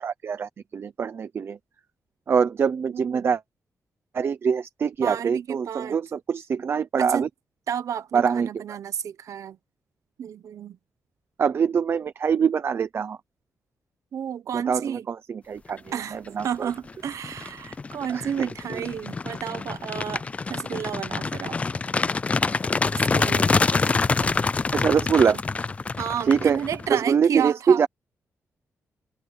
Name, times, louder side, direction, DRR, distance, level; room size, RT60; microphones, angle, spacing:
voice 1, 0.0-1.6 2.3-3.4 4.1-7.3 8.1-8.5 11.4-13.2 14.5-15.8 16.1-16.7 18.1-18.2 24.2-24.3 24.7-25.4 26.3-26.6 26.9-27.9, right 6 dB, 45° right, 0.7 m, -24 dB
voice 2, 2.9-3.3 5.0-6.0 7.0-7.2 7.7-9.6 10.2-10.8 14.1-15.1 15.9-16.2 16.4-21.6 22.9-23.9 26.0-27.9, right 8 dB, 70° right, 1.1 m, -31 dB
sound 1, 16.1-16.5 16.9-27.0, left 4 dB, 25° left, 0.3 m, -26 dB
wide cardioid pair, 150°, 6 cm